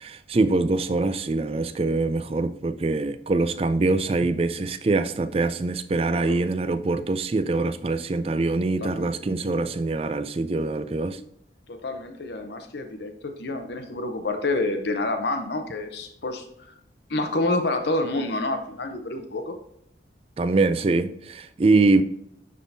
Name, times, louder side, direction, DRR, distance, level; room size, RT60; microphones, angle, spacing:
voice 1, 0.0-11.2 20.4-22.0, right 3 dB, 30° right, 0.4 m, -24 dB
voice 2, 8.8-9.1 11.7-16.5 17.1-19.6, left 2 dB, 70° left, 0.7 m, -28 dB
10.0 x 3.7 x 2.7 m
head